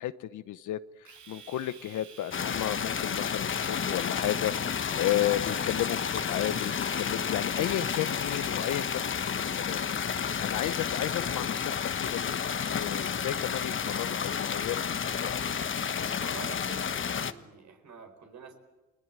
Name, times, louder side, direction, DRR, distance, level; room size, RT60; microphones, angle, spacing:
voice 1, 0.0-9.9 10.4-15.3, left 13 dB, 80° left, 13 dB, 1.0 m, -33 dB
Domestic sounds home sounds, 1.1-8.8, right 6 dB, 90° right, 4.9 m, -51 dB
sound 1, 2.3-17.3, left 7 dB, 40° left, 1.2 m, -31 dB
voice 2, 16.2-18.5, right 6 dB, 65° right, 4 dB, 4.7 m, -47 dB
29.5 x 20.5 x 8.9 m, 1.1 s
cardioid pair, 90°, 30 cm